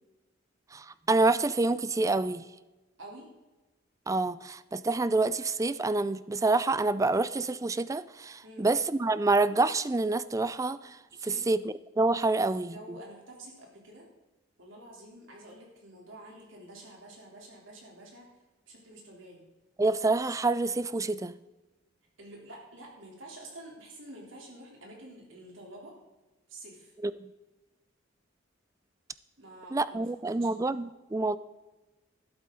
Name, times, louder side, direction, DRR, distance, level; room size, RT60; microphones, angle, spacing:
voice 1, 0.7-2.4 4.1-10.8 11.2-13.0 19.8-21.3 27.0-27.1 29.7-31.4, right 3 dB, 15° right, 15 dB, 0.4 m, -27 dB
voice 2, 3.0-3.3 8.4-8.7 11.1-11.5 12.3-14.1 14.6-18.3 18.7-19.4 22.2-25.9 26.5-26.9 29.4-30.5, right 1 dB, 75° right, -1 dB, 3.6 m, -48 dB
12.5 x 12.0 x 3.9 m, 1.1 s
head